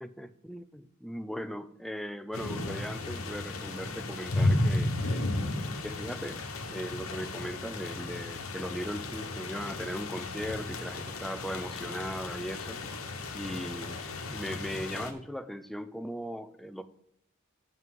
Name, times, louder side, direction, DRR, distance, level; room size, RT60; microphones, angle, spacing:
voice 1, 0.0-5.4 5.8-6.4 6.7-12.8 13.3-14.0 14.3-16.8, equal, ahead, 11 dB, 0.4 m, -38 dB
sound 1, 2.3-15.1, left 2 dB, 90° left, 1.2 m, -34 dB
7.7 x 5.7 x 7.5 m, 0.71 s
head